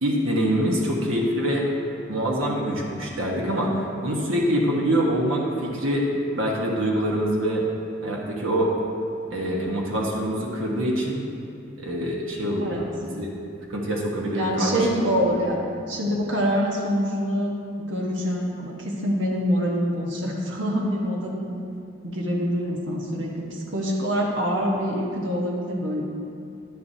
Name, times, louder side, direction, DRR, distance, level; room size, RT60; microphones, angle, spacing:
voice 1, 0.0-1.7 2.1-6.1 6.3-7.6 8.0-8.7 9.3-11.2 11.8-13.3 13.7-14.9 15.3-15.4, equal, 85° right, -2 dB, 1.4 m, -25 dB
voice 2, 14.3-15.6 15.9-21.6 22.0-26.0, equal, 65° right, -2 dB, 1.3 m, -25 dB
10.5 x 10.5 x 2.8 m, 2.6 s
head